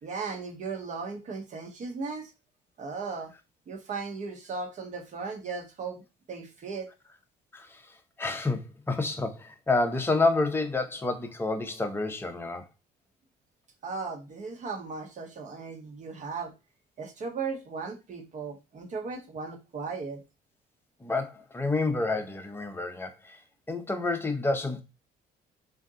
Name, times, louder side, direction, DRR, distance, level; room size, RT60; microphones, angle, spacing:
voice 1, 0.0-2.3 2.8-3.3 3.7-6.0 6.3-6.9 13.8-16.5 17.0-20.2, right 4 dB, 45° right, 1.1 m, -36 dB
voice 2, 7.5-7.9 8.2-12.7 21.0-23.4 23.7-24.8, left 3 dB, 15° left, 0.7 m, -29 dB
3.7 x 2.7 x 3.6 m
cardioid pair, 110°, 17 cm